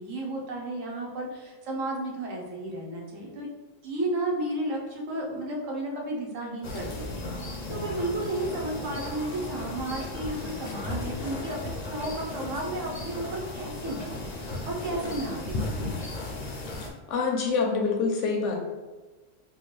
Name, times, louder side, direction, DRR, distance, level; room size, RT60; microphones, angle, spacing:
voice 1, 0.0-3.5 3.8-15.9, right 1 dB, 90° right, -1 dB, 1.1 m, -33 dB
sound 1, 6.6-16.9, left 2 dB, 55° left, 0.5 m, -35 dB
voice 2, 17.1-18.6, left 4 dB, 75° left, 1 dB, 0.9 m, -26 dB
3.6 x 2.2 x 3.0 m, 1.3 s
omnidirectional pair, 1.3 m